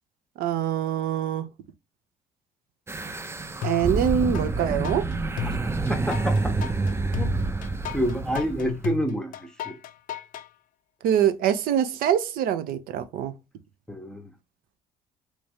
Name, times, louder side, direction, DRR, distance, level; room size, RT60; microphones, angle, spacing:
voice 1, 0.4-1.5 3.6-5.0 11.0-13.3, right 9 dB, 70° right, 0.5 m, -24 dB
sound 1, 2.9-8.8, right 3 dB, 15° right, 0.5 m, -28 dB
sound 2, 3.6-4.5 4.8-10.5, left 12 dB, 60° left, 0.4 m, -34 dB
voice 2, 5.4-6.5 7.2-7.3 7.9-9.8 13.9-14.3, equal, 5° left, 0.8 m, -29 dB
3.1 x 2.5 x 3.4 m
hypercardioid pair, 60°, 16 cm